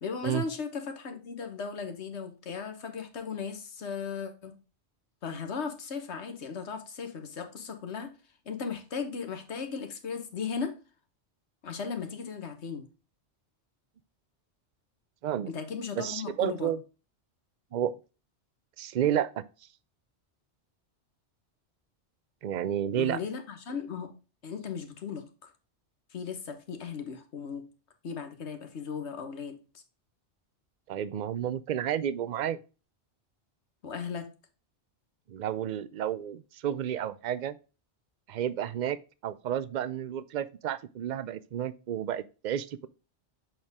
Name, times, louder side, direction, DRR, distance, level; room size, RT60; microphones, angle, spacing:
voice 1, 0.0-4.6 5.2-8.1 8.4-10.7 11.6-12.9 15.5-16.7 22.9-24.1 24.4-25.5 26.1-27.6 28.0-29.8 33.8-34.3, left 6 dB, 75° left, 1.4 m, -37 dB
voice 2, 16.0-16.8 17.7-17.9 18.8-19.4 22.4-23.2 30.9-32.6 35.3-37.6 38.3-39.0 39.2-42.9, right 10 dB, 55° right, 0.5 m, -31 dB
7.5 x 4.5 x 3.5 m
omnidirectional pair, 1.2 m